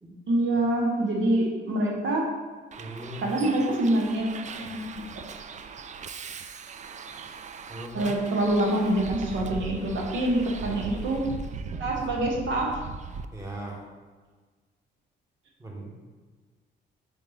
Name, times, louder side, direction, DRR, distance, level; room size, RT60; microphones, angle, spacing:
voice 1, 0.3-2.3 3.2-4.3 4.6-5.0 7.9-11.2 11.8-12.8, right 1 dB, 70° right, -1 dB, 1.1 m, -25 dB
Bus, 2.7-13.2, right 5 dB, 35° right, 0.4 m, -39 dB
voice 2, 2.8-3.2 7.7-8.2 10.6-10.8 13.3-13.8 15.6-16.0, right 1 dB, 15° right, -2 dB, 1.4 m, -39 dB
5.2 x 4.5 x 3.9 m, 1.4 s
cardioid pair, 90°, 20 cm